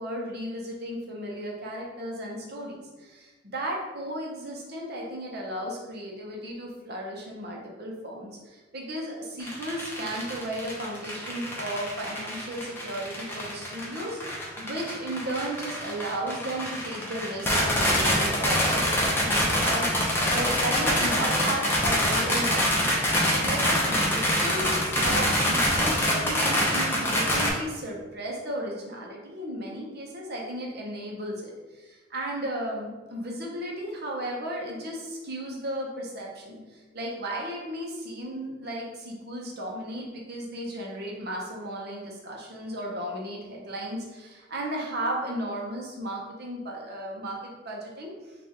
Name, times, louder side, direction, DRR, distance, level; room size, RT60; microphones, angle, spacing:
voice 1, 0.0-22.9 23.4-48.4, right 1 dB, 60° right, -1 dB, 0.9 m, -35 dB
sound 1, 9.4-27.5, equal, 15° left, 0.8 m, -25 dB
5.6 x 2.6 x 3.0 m, 1.2 s
head